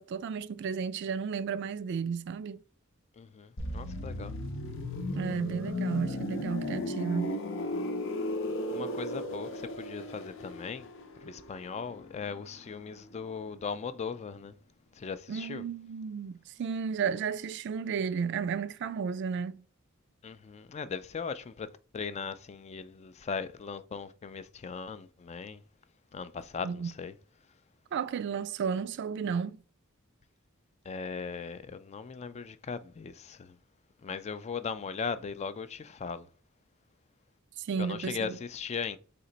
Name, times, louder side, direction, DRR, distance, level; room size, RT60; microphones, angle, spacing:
voice 1, 0.0-2.6 5.1-7.3 15.3-19.6 26.6-26.9 27.9-29.6 37.6-38.4, right 6 dB, 55° right, 0.3 m, -33 dB
voice 2, 3.2-4.4 8.7-10.9 11.2-14.5 15.0-15.6 20.2-25.6 26.1-27.1 30.9-33.6 34.0-36.3 37.8-39.0, left 5 dB, 30° left, 0.3 m, -38 dB
sound 1, 3.6-13.2 13.5-13.7, left 1 dB, 65° left, 0.7 m, -36 dB
4.3 x 2.8 x 3.9 m
head